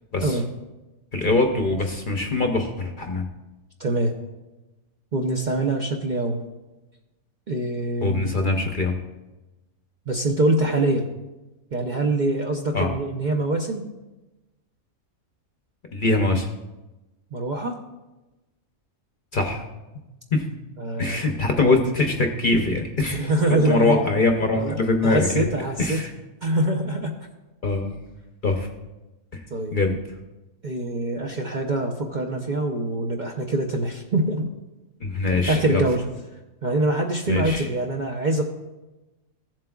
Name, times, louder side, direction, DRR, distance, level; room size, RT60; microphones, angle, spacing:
voice 1, 1.1-3.3 8.0-9.0 12.7-12.9 15.9-16.5 19.3-19.6 20.3-20.4 21.0-25.4 25.8-26.1 27.6-27.9 28.4-28.7 29.3-29.4 29.7-30.0 35.0-35.8 37.3-37.7, left 2 dB, 45° left, 4 dB, 0.7 m, -23 dB
voice 2, 3.8-4.1 5.1-6.4 7.5-8.3 10.1-11.0 11.7-13.8 17.3-17.8 20.8-21.4 23.1-24.0 24.5-26.0 26.4-27.1 29.5-29.8 30.6-34.5 35.5-36.0 36.6-38.4, right 2 dB, 45° right, 1 dB, 0.6 m, -24 dB
15.0 x 7.5 x 2.3 m, 1.1 s
omnidirectional pair, 1.5 m